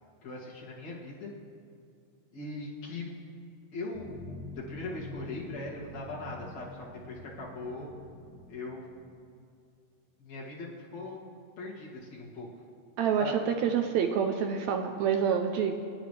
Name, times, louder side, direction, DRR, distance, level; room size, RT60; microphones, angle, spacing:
voice 1, 0.2-1.3 2.3-3.1 3.7-7.9 8.5-8.8 10.2-11.2 11.6-12.5 13.2-13.3, left 3 dB, 60° left, -5 dB, 3.4 m, -40 dB
sound 1, 3.9-9.2, left 2 dB, 90° left, 3.4 m, -46 dB
voice 2, 13.0-15.8, right 7 dB, 75° right, 5 dB, 1.8 m, -27 dB
27.0 x 9.3 x 3.3 m, 2.3 s
omnidirectional pair, 3.6 m